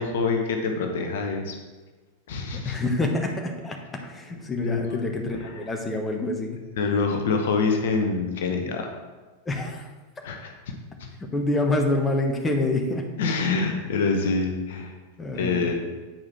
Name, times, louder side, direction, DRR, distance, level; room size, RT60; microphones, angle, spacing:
voice 1, 0.0-1.6 2.3-2.8 4.6-5.0 6.8-8.9 10.2-10.7 11.0-11.1 13.2-14.9 15.4-15.7, left 4 dB, 55° left, 3 dB, 0.9 m, -25 dB
voice 2, 2.5-6.6 9.4-9.9 11.3-13.1 15.2-15.7, left 2 dB, 15° left, 2 dB, 1.1 m, -27 dB
8.9 x 4.8 x 4.4 m, 1.3 s
figure-of-eight pair, 90°, 0 cm